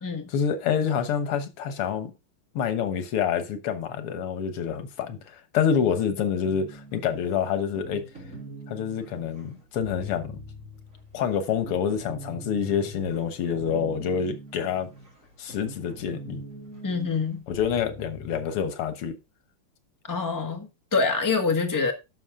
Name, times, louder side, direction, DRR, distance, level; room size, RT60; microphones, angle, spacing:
voice 1, 0.3-2.1 2.6-8.1 8.7-10.3 11.1-14.9 15.4-16.4 17.5-19.2, left 7 dB, 90° left, 2.1 m, -27 dB
sound 1, 6.4-18.5, right 1 dB, 35° right, 3.6 m, -43 dB
voice 2, 16.8-17.4 20.1-21.9, left 4 dB, 10° left, 1.2 m, -26 dB
11.5 x 6.2 x 3.6 m
omnidirectional pair, 2.4 m